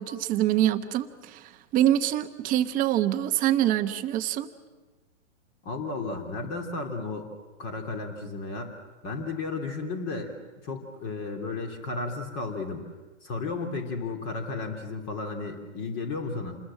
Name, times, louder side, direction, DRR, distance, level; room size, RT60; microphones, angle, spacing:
voice 1, 0.0-4.5, right 12 dB, 20° right, 9 dB, 1.0 m, -25 dB
voice 2, 5.6-7.3 7.6-8.7 9.0-10.3 10.6-12.9 13.2-16.5, left 3 dB, 30° left, 4 dB, 3.1 m, -33 dB
27.5 x 21.0 x 7.6 m, 1.2 s
hypercardioid pair, 135°, 37 cm